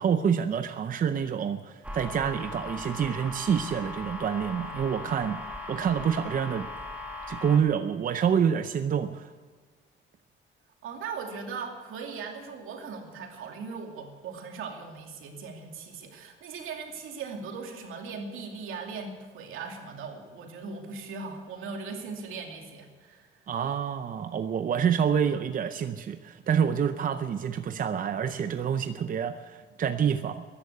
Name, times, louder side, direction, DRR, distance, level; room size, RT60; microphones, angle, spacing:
voice 1, 0.0-5.4 5.7-6.7 7.3-9.3 23.5-30.4, right 7 dB, 45° right, 10 dB, 0.6 m, -27 dB
sound 1, 1.8-7.6, left 2 dB, 5° right, 2.0 m, -39 dB
voice 2, 10.8-23.4, right 5 dB, 85° right, 3 dB, 2.6 m, -39 dB
13.5 x 11.0 x 8.4 m, 1.5 s
cardioid pair, 125°, 20 cm